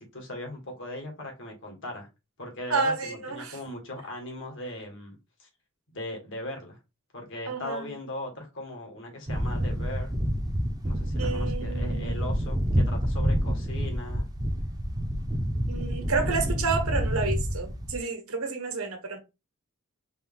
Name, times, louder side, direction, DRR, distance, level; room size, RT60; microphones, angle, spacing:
voice 1, 0.0-2.1 2.4-5.5 5.9-6.8 7.1-10.2 10.8-14.3, left 1 dB, 60° left, 1.7 m, -39 dB
voice 2, 2.7-3.6 7.5-7.9 11.2-12.3 15.7-19.2, right 4 dB, 85° right, 1.3 m, -30 dB
sound 1, 9.3-18.0, equal, 20° right, 0.6 m, -28 dB
4.5 x 2.5 x 3.6 m
head